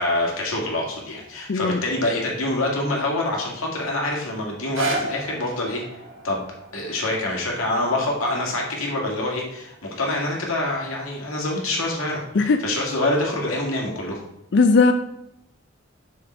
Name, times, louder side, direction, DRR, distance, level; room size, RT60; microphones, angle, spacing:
voice 1, 0.0-5.8 6.2-6.4 6.7-14.2, left 1 dB, 85° left, -1 dB, 2.1 m, -26 dB
voice 2, 1.5-1.8 12.3-12.6 14.5-14.9, left 4 dB, 55° left, 9 dB, 0.4 m, -17 dB
sound 1, 4.5-10.6 11.2-11.3, right 2 dB, 70° right, 1.6 m, -34 dB
6.3 x 6.1 x 4.4 m, 0.83 s
head